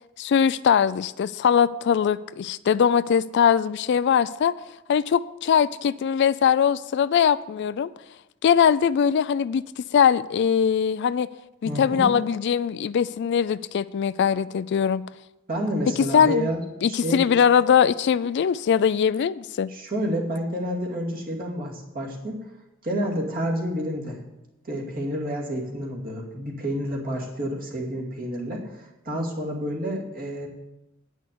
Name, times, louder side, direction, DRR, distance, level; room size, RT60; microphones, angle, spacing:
voice 1, 0.2-4.5 4.9-7.9 8.4-11.3 11.6-15.0 16.0-16.5 16.8-19.7, left 7 dB, 55° left, 16 dB, 0.3 m, -21 dB
voice 2, 11.6-12.1 15.5-16.6 16.9-17.2 19.7-22.4 22.8-24.2 24.6-30.5, equal, 45° right, -1 dB, 2.4 m, -29 dB
9.2 x 6.2 x 8.4 m, 0.94 s
head